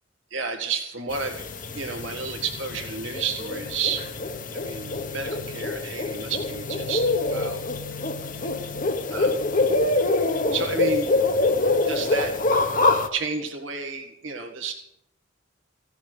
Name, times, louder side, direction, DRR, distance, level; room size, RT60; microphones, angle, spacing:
voice 1, 0.3-1.4 1.7-4.1 4.5-7.6 9.1-9.4 10.3-11.1 11.9-12.3 13.1-14.7, right 5 dB, 85° right, 4 dB, 1.9 m, -31 dB
sound 1, 1.1-13.1, left 2 dB, 45° left, 1.1 m, -25 dB
16.5 x 7.1 x 8.2 m, 0.76 s
head